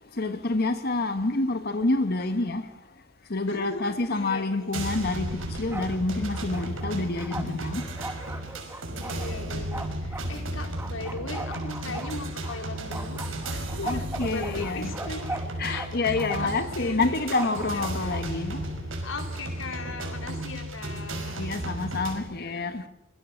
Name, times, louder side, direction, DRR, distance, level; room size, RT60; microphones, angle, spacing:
voice 1, 0.1-2.7 3.3-7.8 13.8-14.9 15.6-18.7 21.4-22.9, left 3 dB, 50° left, 1.4 m, -28 dB
voice 2, 3.5-5.0 8.9-13.2 13.5-18.1 19.0-21.4, left 2 dB, 70° left, 4.3 m, -38 dB
sound 1, 4.7-22.2, right 1 dB, 75° right, 5.9 m, -34 dB
Bark, 5.4-6.0 6.3-10.3 10.8-12.6 12.9-15.9 16.2-16.6 17.3-18.2, right 2 dB, 10° right, 2.1 m, -38 dB
26.0 x 23.5 x 6.5 m
head